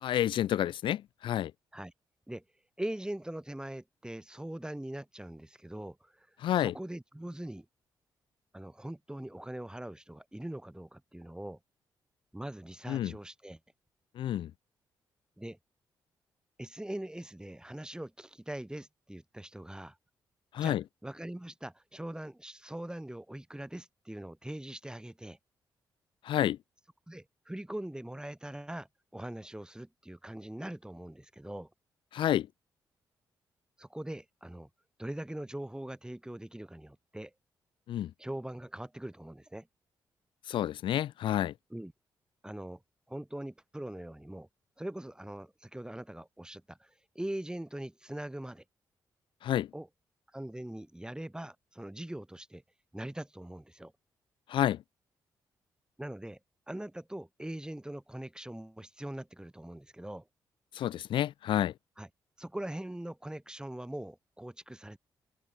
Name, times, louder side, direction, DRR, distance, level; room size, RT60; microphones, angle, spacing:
voice 1, 0.0-1.5 6.4-6.7 12.9-13.1 14.2-14.5 20.5-20.8 26.2-26.6 32.1-32.5 37.9-38.1 40.5-41.5 49.4-49.7 54.5-54.8 60.7-61.7, left 11 dB, 70° left, 0.4 m, -29 dB
voice 2, 2.8-6.3 6.6-7.7 8.5-11.6 12.3-13.6 15.4-15.6 16.6-20.0 20.6-20.8 21.0-25.4 27.1-31.7 33.8-34.7 35.0-37.3 38.2-39.7 41.7-41.9 42.4-42.8 43.1-44.5 44.8-48.6 49.7-49.9 50.3-52.6 52.9-53.9 56.0-56.4 56.7-60.3 62.0-62.1 62.4-65.0, right 1 dB, 10° right, 2.8 m, -42 dB
supercardioid pair, 55°, 9 cm